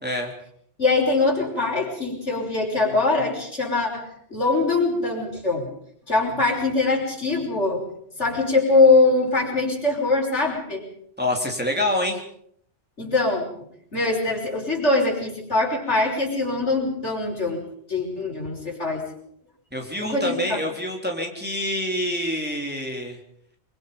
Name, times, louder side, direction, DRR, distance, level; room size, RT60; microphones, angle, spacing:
voice 1, 0.0-0.3 11.2-12.2 19.7-23.2, left 1 dB, 10° right, 1 dB, 3.7 m, -26 dB
voice 2, 0.8-5.7 6.1-7.8 8.2-10.8 13.0-13.5 13.9-17.6 17.9-19.1 20.0-20.6, left 3 dB, 70° left, -1 dB, 6.1 m, -22 dB
24.5 x 24.5 x 5.3 m, 0.69 s
omnidirectional pair, 1.2 m